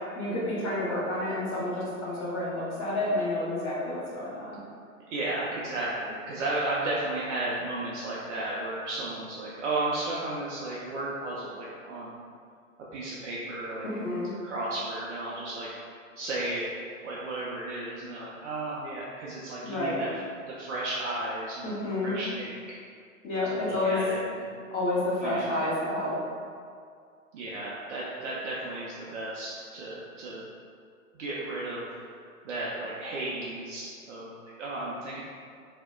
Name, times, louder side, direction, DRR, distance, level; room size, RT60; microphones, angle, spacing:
voice 1, 0.1-4.6 13.8-14.3 19.6-20.0 21.6-22.2 23.2-24.0 24.7-26.2, left 2 dB, 25° left, -7 dB, 0.7 m, -30 dB
voice 2, 5.1-12.2 12.9-13.8 14.4-15.7 16.2-16.7 17.0-20.1 20.5-21.8 22.0-22.8 23.5-24.4 25.2-25.5 27.3-30.4 31.1-31.9 32.4-35.2, right 2 dB, 60° right, -7 dB, 0.5 m, -34 dB
2.8 x 2.1 x 2.4 m, 2.2 s
figure-of-eight pair, 110°, 42 cm